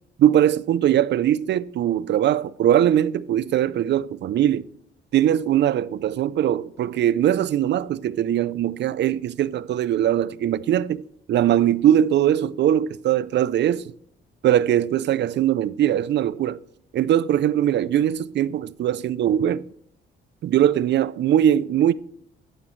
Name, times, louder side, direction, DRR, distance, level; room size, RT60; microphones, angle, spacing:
voice 1, 0.2-4.7 5.1-11.0 11.3-13.8 14.4-16.6 16.9-19.7 20.4-21.9, right 11 dB, 60° right, 0.5 m, -21 dB
11.0 x 9.0 x 3.1 m
cardioid pair, 90°, 20 cm